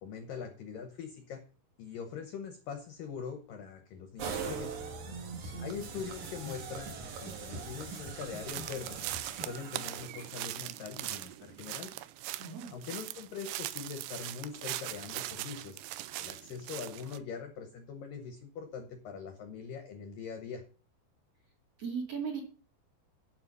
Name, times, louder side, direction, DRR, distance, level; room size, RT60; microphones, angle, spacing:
voice 1, 0.0-1.4 1.8-4.7 5.6-9.1 9.4-11.9 12.7-15.8 16.2-20.6, left 6 dB, 80° left, 6 dB, 2.0 m, -42 dB
sound 1, 4.2-10.2, right 5 dB, 60° right, 2.2 m, -41 dB
voice 2, 5.0-5.7 12.4-12.7 21.8-22.4, right 6 dB, 40° right, 2 dB, 2.5 m, -38 dB
sound 2, 8.5-17.2, right 16 dB, 85° right, 2.4 m, -41 dB
8.9 x 7.9 x 5.4 m, 0.40 s
omnidirectional pair, 5.3 m